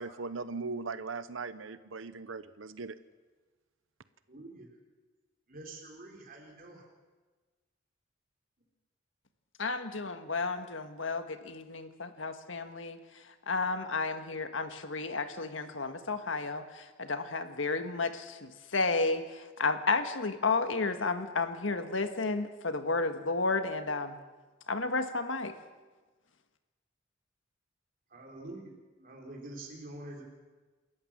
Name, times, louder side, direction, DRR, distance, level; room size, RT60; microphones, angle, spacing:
voice 1, 0.0-3.0, right 4 dB, 90° right, 14 dB, 0.8 m, -39 dB
voice 2, 4.3-4.7 5.5-6.8 28.1-30.2, right 2 dB, 45° right, 0 dB, 3.9 m, -46 dB
voice 3, 9.6-24.2 24.7-25.6, left 3 dB, 80° left, 8 dB, 1.6 m, -32 dB
28.0 x 14.0 x 7.5 m, 1.3 s
head